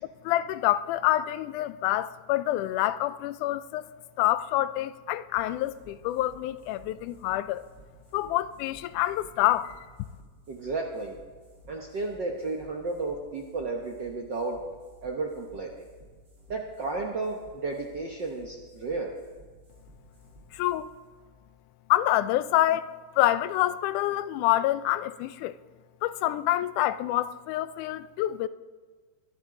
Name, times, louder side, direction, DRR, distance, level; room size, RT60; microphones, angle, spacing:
voice 1, 0.2-3.9 4.2-7.7 8.1-9.8 20.5-20.9 21.9-25.6 26.0-28.5, left 14 dB, 85° left, 2.0 m, -27 dB
sound 1, 5.3-22.4, equal, 20° right, 3.2 m, -55 dB
voice 2, 10.5-11.1 11.7-14.6 15.0-15.8 16.5-19.1, right 3 dB, 70° right, 1.0 m, -33 dB
21.5 x 12.0 x 3.8 m
omnidirectional pair, 3.6 m